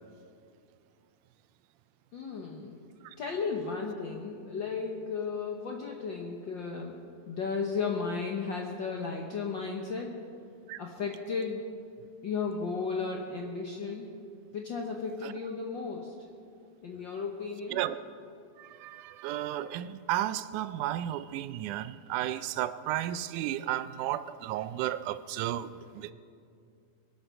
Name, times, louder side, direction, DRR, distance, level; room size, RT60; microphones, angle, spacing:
voice 1, 2.1-2.8 3.2-10.2 10.8-11.7 12.2-14.1 14.5-16.2 16.8-17.8, left 5 dB, 85° left, 1 dB, 1.0 m, -34 dB
voice 2, 18.8-25.7, right 13 dB, 80° right, 14 dB, 2.0 m, -33 dB
22.5 x 8.1 x 6.3 m, 2.4 s
omnidirectional pair, 3.6 m